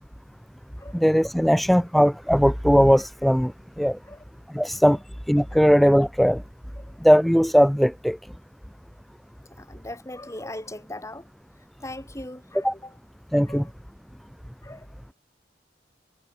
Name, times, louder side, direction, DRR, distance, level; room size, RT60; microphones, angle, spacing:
voice 1, 0.9-3.5 3.8-4.0 4.5-5.0 5.3-6.4 7.0-8.2 12.6-12.7 13.3-13.7, equal, ahead, 0.5 m, -19 dB
voice 2, 9.6-11.3 11.8-12.9 13.5-13.7 14.6-14.9, left 1 dB, 15° left, 3.8 m, -39 dB
head